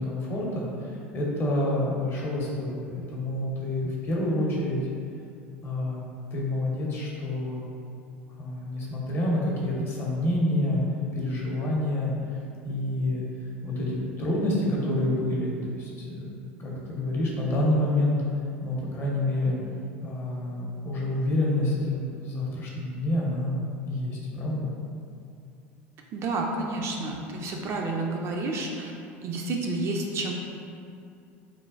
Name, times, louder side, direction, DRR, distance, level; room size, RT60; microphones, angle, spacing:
voice 1, 0.0-4.8 5.6-6.0 6.3-7.6 8.4-10.8 11.1-12.1 12.6-13.2 13.6-16.3 16.6-18.2 18.6-19.6 20.0-24.7, left 1 dB, 40° left, -4 dB, 0.7 m, -28 dB
voice 2, 26.1-28.9 29.2-30.3, right 2 dB, 45° right, 0 dB, 0.3 m, -30 dB
3.2 x 2.1 x 2.4 m, 2.5 s
hypercardioid pair, 85°, 6 cm